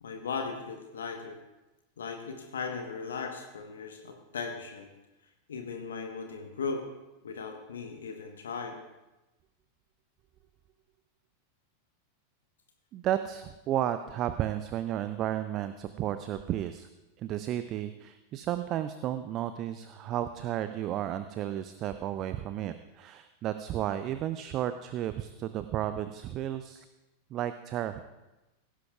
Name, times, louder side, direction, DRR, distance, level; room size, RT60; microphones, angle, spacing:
voice 1, 0.0-1.4 2.0-4.9 5.5-6.9 7.2-8.8, left 5 dB, 65° left, 4 dB, 1.2 m, -37 dB
voice 2, 12.9-16.9 17.2-26.8 27.3-28.0, right 11 dB, 35° right, 11 dB, 0.5 m, -33 dB
17.5 x 16.0 x 2.4 m, 1.0 s
figure-of-eight pair, 90°, 0 cm